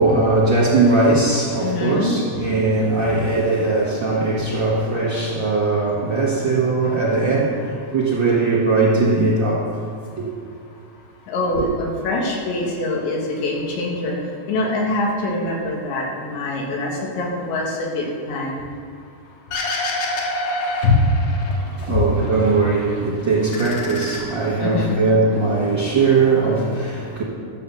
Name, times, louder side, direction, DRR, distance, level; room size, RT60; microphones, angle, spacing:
voice 1, 0.0-9.7 10.1-10.2 11.5-11.7 21.5-27.2, right 3 dB, 80° right, -6 dB, 1.0 m, -19 dB
voice 2, 1.6-2.4 11.3-14.1 14.5-18.6 20.8-21.0 21.9-22.0 24.6-25.0, left 3 dB, 90° left, -1 dB, 4.2 m, -24 dB
sound 1, 19.5-21.8 22.2-23.0 23.3-24.9, left 1 dB, 65° left, 3.1 m, -28 dB
13.0 x 7.4 x 6.9 m, 2.4 s
omnidirectional pair, 5.0 m